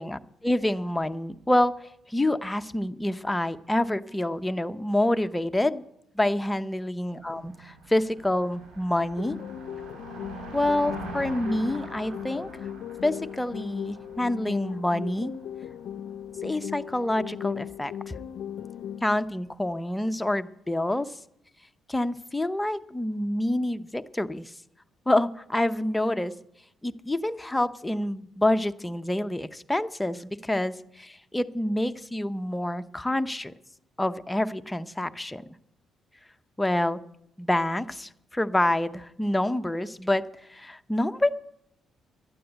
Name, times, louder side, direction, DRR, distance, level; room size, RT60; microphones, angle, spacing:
voice 1, 0.0-1.7 2.1-5.8 6.1-9.4 10.5-12.5 13.0-15.3 16.4-18.1 19.0-21.2 21.9-24.5 25.1-26.3 26.8-33.5 34.0-35.4 36.6-37.0 37.4-40.2 40.5-41.3, left 1 dB, 10° left, 10 dB, 0.6 m, -27 dB
Car passing by, 7.2-19.5, right 3 dB, 75° right, 5.1 m, -45 dB
sound 1, 9.2-19.2, left 9 dB, 80° left, 0.4 m, -38 dB
12.5 x 9.3 x 7.9 m, 0.78 s
cardioid pair, 90°, 0 cm